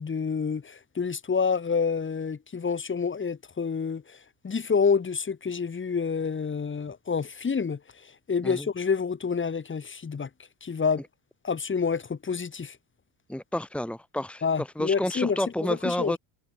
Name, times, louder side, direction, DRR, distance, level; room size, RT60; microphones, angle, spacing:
voice 1, 0.0-10.3 10.6-11.0 11.4-12.8 14.4-16.1, left 5 dB, 25° left, 3.7 m, -28 dB
voice 2, 13.3-16.2, left 1 dB, 5° left, 2.6 m, -30 dB
supercardioid pair, 85°, 42 cm